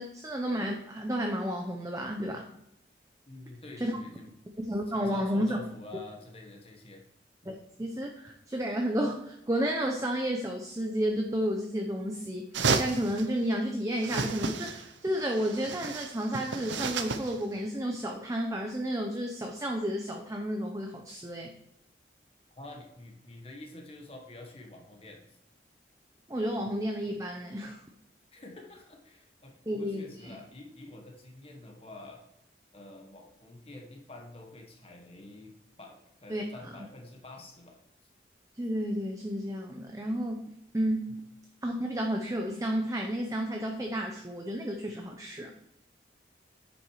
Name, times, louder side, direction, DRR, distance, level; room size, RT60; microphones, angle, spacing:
voice 1, 0.0-2.5 3.8-4.0 4.7-5.6 7.5-12.5 12.8-21.5 26.3-27.8 29.7-30.4 36.3-36.4 38.5-41.2 41.6-45.5, equal, 20° right, 2 dB, 0.7 m, -32 dB
voice 2, 3.3-4.3 4.9-7.0 22.6-25.4 28.3-32.2 32.7-37.8 41.1-41.2, left 2 dB, 30° left, 1 dB, 1.3 m, -48 dB
sound 1, 12.5-13.3 14.0-14.9 15.2-17.4, right 4 dB, 85° right, 0.7 m, -32 dB
9.7 x 6.0 x 4.8 m, 0.82 s
head